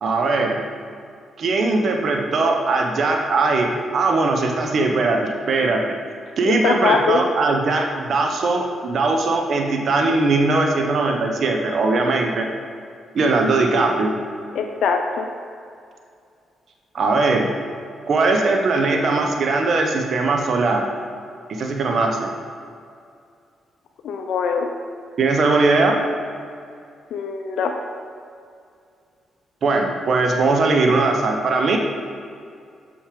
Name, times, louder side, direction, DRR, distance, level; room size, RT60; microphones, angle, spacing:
voice 1, 0.0-0.6 1.4-5.9 6.4-12.5 13.1-14.1 16.9-17.5 18.1-20.9 21.5-22.3 25.2-26.1 29.6-31.8, right 3 dB, 60° right, 2 dB, 1.0 m, -20 dB
voice 2, 6.4-7.2 14.6-15.3 24.0-24.7 27.1-27.7, left 5 dB, 70° left, 3 dB, 0.5 m, -22 dB
6.4 x 5.9 x 5.0 m, 2.3 s
supercardioid pair, 55°, 0 cm